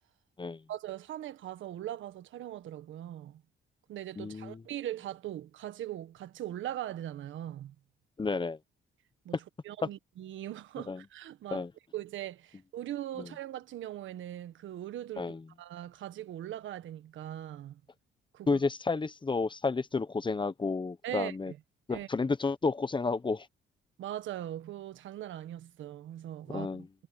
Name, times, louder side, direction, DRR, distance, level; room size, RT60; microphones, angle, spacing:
voice 1, 0.7-3.4 3.9-7.7 9.2-9.4 9.6-11.6 11.9-17.8 18.3-18.6 21.0-21.6 21.9-22.1 24.0-26.8, right 12 dB, 75° right, 1.5 m, -40 dB
voice 2, 4.2-4.6 8.2-8.6 10.9-11.0 11.5-11.7 13.2-13.3 15.2-15.4 18.5-21.5 21.9-23.5 26.5-26.9, left 4 dB, 25° left, 1.0 m, -31 dB
cardioid pair, 90°, 20 cm